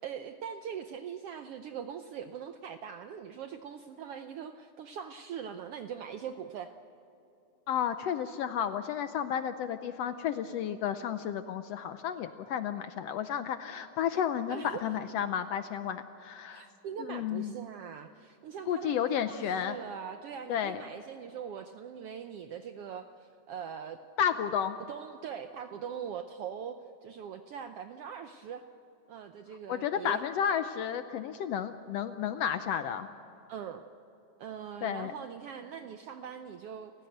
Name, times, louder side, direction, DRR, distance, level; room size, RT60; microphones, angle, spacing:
voice 1, 0.0-6.7 14.5-14.9 16.5-24.0 24.9-28.6 29.1-30.2 33.5-33.8 34.4-36.9, right 8 dB, 75° right, 8 dB, 1.4 m, -42 dB
voice 2, 7.7-16.7 17.0-17.5 18.7-19.8 20.5-20.8 24.2-24.8 29.7-33.1 34.8-35.1, left 9 dB, 75° left, 10 dB, 1.5 m, -32 dB
29.5 x 15.5 x 8.0 m, 3.0 s
omnidirectional pair, 3.5 m